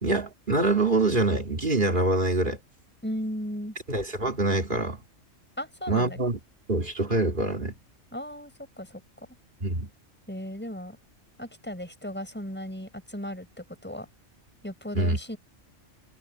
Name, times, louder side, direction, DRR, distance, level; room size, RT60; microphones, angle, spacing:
voice 1, 0.0-2.6 3.9-5.0 5.9-6.4 6.7-7.7 9.6-9.9 14.9-15.2, right 2 dB, 40° right, 3.2 m, -25 dB
voice 2, 3.0-3.7 5.6-6.2 8.1-8.5 8.8-9.3 10.3-11.0 11.4-14.1 14.6-15.4, equal, 10° left, 5.7 m, -36 dB
omnidirectional pair, 1.4 m